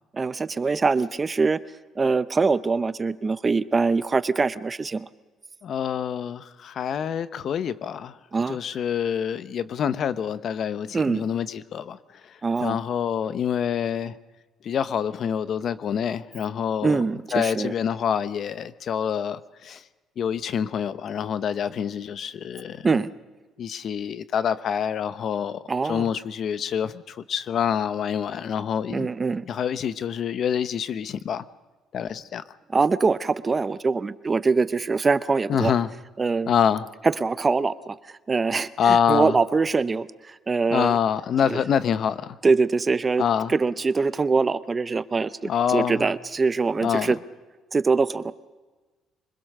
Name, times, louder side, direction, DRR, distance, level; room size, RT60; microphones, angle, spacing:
voice 1, 0.1-1.6 2.0-5.1 8.3-8.6 10.9-11.2 12.4-12.8 16.8-17.7 22.8-23.1 25.7-26.1 28.9-29.4 32.7-35.7 36.2-36.5 37.2-38.0 38.3-41.0 41.5-41.6 42.4-43.2 43.5-45.3 45.7-47.2 47.7-48.3, right 4 dB, 25° right, 0.7 m, -23 dB
voice 2, 5.6-8.2 8.5-14.1 14.6-17.0 17.3-19.8 20.2-22.9 23.6-29.1 29.5-31.4 31.9-32.4 35.5-35.9 36.5-36.9 38.8-39.4 40.7-42.4 43.2-43.5 45.4-46.1 46.8-47.1, left 8 dB, 55° left, 0.9 m, -26 dB
24.0 x 21.5 x 6.7 m
cardioid pair, 115°, 0 cm